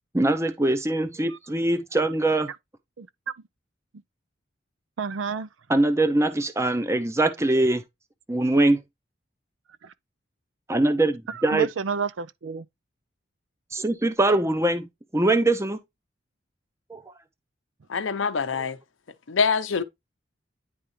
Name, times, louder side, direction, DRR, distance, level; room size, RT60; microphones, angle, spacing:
voice 1, 0.1-2.5 5.7-7.8 8.3-8.8 10.7-11.7 13.7-14.9 15.1-15.8 16.9-17.0, right 2 dB, 15° right, 0.6 m, -22 dB
voice 2, 5.0-5.5 9.8-9.9 11.3-12.7, right 5 dB, 85° right, 0.5 m, -30 dB
voice 3, 17.9-18.8 19.3-19.8, left 5 dB, 85° left, 0.7 m, -24 dB
9.8 x 3.6 x 3.1 m
head